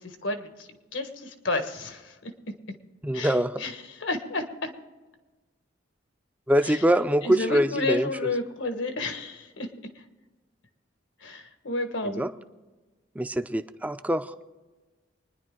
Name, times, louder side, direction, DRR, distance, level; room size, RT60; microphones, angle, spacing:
voice 1, 0.2-2.3 3.1-3.3 3.6-3.7 4.0-4.7 6.6-6.8 7.2-9.7 11.2-12.2, left 2 dB, 85° left, 6 dB, 1.5 m, -31 dB
voice 2, 3.0-3.7 6.5-8.3 12.0-12.3 13.2-14.3, equal, 10° right, 10 dB, 0.5 m, -24 dB
25.0 x 10.5 x 3.8 m, 1.2 s
head